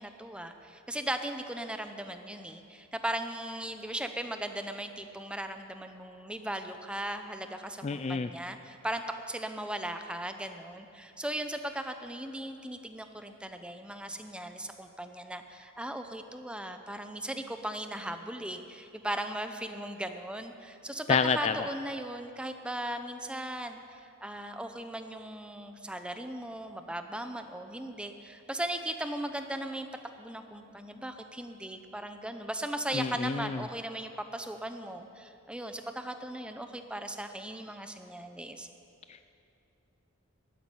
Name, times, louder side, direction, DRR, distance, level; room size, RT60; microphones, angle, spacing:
voice 1, 0.0-29.9 30.2-38.7, right 1 dB, 5° right, 7 dB, 0.7 m, -38 dB
voice 2, 7.8-8.3 21.1-21.5 32.9-33.6, left 5 dB, 30° left, 10 dB, 0.3 m, -28 dB
13.5 x 9.8 x 9.7 m, 2.8 s
head